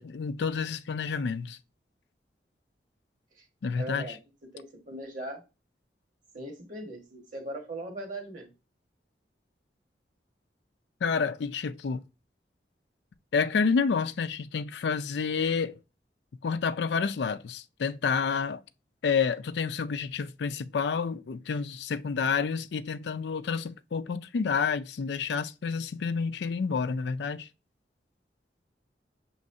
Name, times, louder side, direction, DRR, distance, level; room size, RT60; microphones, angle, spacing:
voice 1, 0.0-1.6 3.6-4.1 11.0-12.0 13.3-15.8 16.4-18.6 19.0-27.5, left 5 dB, 80° left, 0.4 m, -29 dB
voice 2, 3.8-4.2 4.5-5.4 6.3-8.5, right 1 dB, 45° right, 1.4 m, -39 dB
6.3 x 3.1 x 2.6 m
head